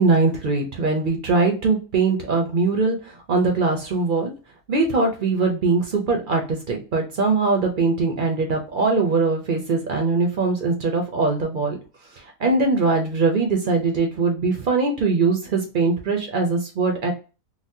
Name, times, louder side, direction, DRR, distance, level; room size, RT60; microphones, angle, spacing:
voice 1, 0.0-4.3 4.7-11.8 12.2-17.1, right 3 dB, 60° right, 2 dB, 0.5 m, -21 dB
4.0 x 2.1 x 2.6 m, 0.33 s
omnidirectional pair, 1.6 m